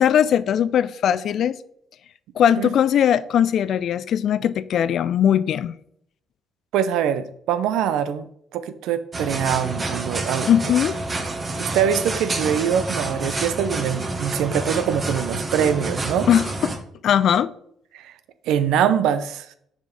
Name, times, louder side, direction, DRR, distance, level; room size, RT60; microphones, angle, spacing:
voice 1, 0.0-1.6 2.4-5.7 10.5-11.0 16.3-16.5 17.0-17.5, left 9 dB, 55° left, 0.4 m, -19 dB
voice 2, 6.7-8.3 8.5-10.5 11.6-16.3 17.9-18.1 18.4-19.5, right 8 dB, 65° right, 0.5 m, -23 dB
sound 1, 9.1-16.8, right 2 dB, 35° right, 1.4 m, -28 dB
6.5 x 5.0 x 5.2 m
figure-of-eight pair, 45°, 0 cm